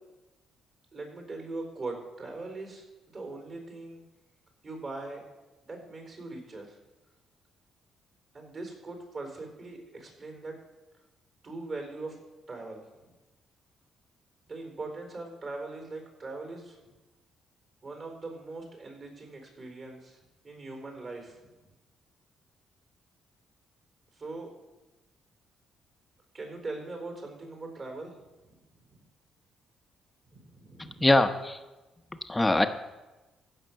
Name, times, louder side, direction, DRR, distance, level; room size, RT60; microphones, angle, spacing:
voice 1, 0.9-4.0 4.6-5.2 5.6-6.8 8.3-10.6 11.4-12.2 12.5-13.1 14.5-16.8 17.8-20.2 20.4-21.4 24.1-24.5 26.3-28.2 28.4-28.5 28.9-29.0 30.3-31.1, right 3 dB, 45° right, 2 dB, 4.2 m, -41 dB
voice 2, 31.0-31.6 32.3-32.7, left 2 dB, 15° left, 8 dB, 0.9 m, -22 dB
15.5 x 5.9 x 6.6 m, 1.1 s
cardioid pair, 90°, 0 cm